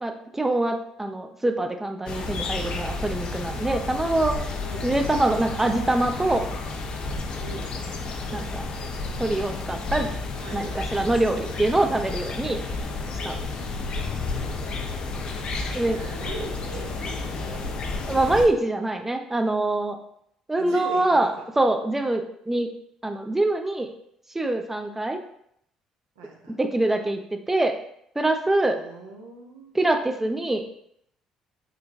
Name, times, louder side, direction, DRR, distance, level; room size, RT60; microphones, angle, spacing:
voice 1, 0.0-4.4 4.8-6.5 8.3-8.6 9.2-10.1 10.5-12.6 13.2-13.4 15.7-16.0 18.1-20.0 20.5-22.7 23.0-23.9 24.3-25.2 26.5-27.7 28.2-28.8 29.7-30.6, right 2 dB, 15° right, 6 dB, 0.4 m, -24 dB
sound 1, 2.1-18.5, left 3 dB, 50° left, 0.5 m, -31 dB
voice 2, 10.4-11.0 14.5-14.7 15.7-17.8 20.6-21.4 26.2-26.6 28.6-29.9, right 3 dB, 80° right, 0 dB, 0.6 m, -40 dB
3.8 x 2.2 x 2.6 m, 0.72 s
hypercardioid pair, 50°, 2 cm